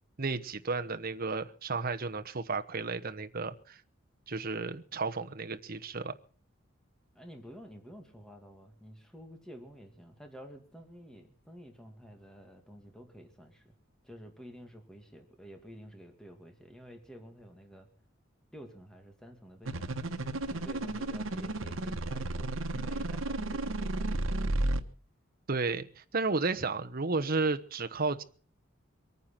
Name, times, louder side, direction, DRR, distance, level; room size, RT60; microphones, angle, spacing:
voice 1, 0.2-3.8 4.3-6.1 25.5-28.2, right 3 dB, 50° right, 8 dB, 1.1 m, -33 dB
voice 2, 7.1-13.7 14.0-17.9 18.5-20.0 20.4-24.7, equal, 5° left, 4 dB, 2.3 m, -50 dB
sound 1, 19.7-24.8, right 2 dB, 85° right, 1.3 m, -33 dB
24.0 x 9.5 x 6.0 m, 0.42 s
head